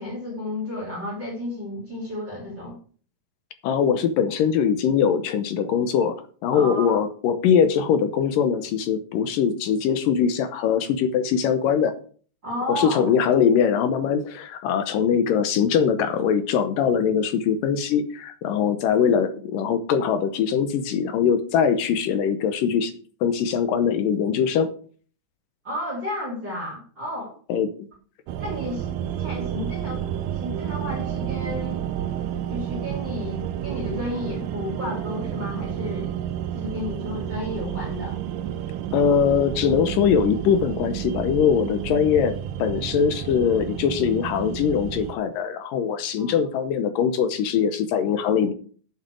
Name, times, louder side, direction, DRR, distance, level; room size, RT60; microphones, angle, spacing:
voice 1, 0.0-2.8 6.5-7.0 12.4-13.0 25.6-27.3 28.4-31.8 32.5-36.2 36.5-38.2 46.2-46.4, left 1 dB, 30° right, -2 dB, 3.2 m, -32 dB
voice 2, 3.6-6.2 6.4-11.9 12.7-22.9 23.2-24.7 27.5-27.9 38.9-48.5, left 7 dB, 75° left, 9 dB, 2.1 m, -22 dB
sound 1, 28.3-45.2, right 11 dB, 80° right, 1.9 m, -31 dB
9.1 x 7.4 x 6.2 m, 0.44 s
omnidirectional pair, 4.7 m